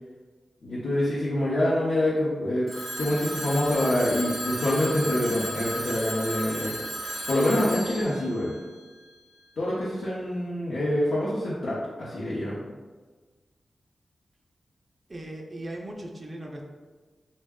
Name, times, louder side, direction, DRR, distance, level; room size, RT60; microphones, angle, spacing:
voice 1, 0.6-2.7 3.0-6.7 7.3-8.5 9.6-12.6, left 1 dB, 70° left, -9 dB, 0.7 m, -26 dB
Telephone, 2.7-9.5, right 1 dB, 80° right, 0.6 m, -35 dB
sound 1, 3.0-8.1, equal, 15° left, 0.6 m, -45 dB
voice 2, 15.1-16.6, right 1 dB, 30° right, 0 dB, 0.3 m, -38 dB
3.4 x 2.1 x 3.5 m, 1.4 s
wide cardioid pair, 130°, 0 cm